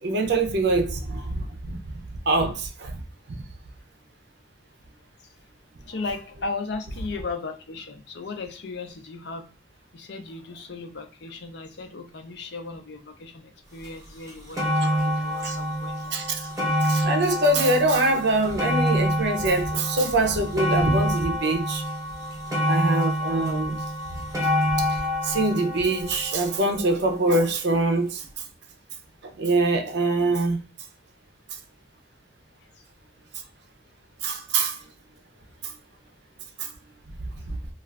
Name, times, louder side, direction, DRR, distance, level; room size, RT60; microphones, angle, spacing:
voice 1, 0.0-1.8 2.3-3.0 3.3-3.4 15.4-15.6 16.1-16.5 16.8-21.8 22.7-23.8 24.1-24.2 24.8-28.4 29.3-30.6 31.5-31.6 34.2-34.8 35.6-35.7 36.6-36.7 37.5-37.6, right 2 dB, 55° right, 0.5 m, -24 dB
voice 2, 5.9-9.5 9.9-16.5 32.8-32.9, left 3 dB, 55° left, 0.5 m, -36 dB
sound 1, 13.8-13.9 14.3-27.4 28.2-28.3, equal, 15° right, 0.6 m, -27 dB
2.4 x 2.3 x 3.3 m
head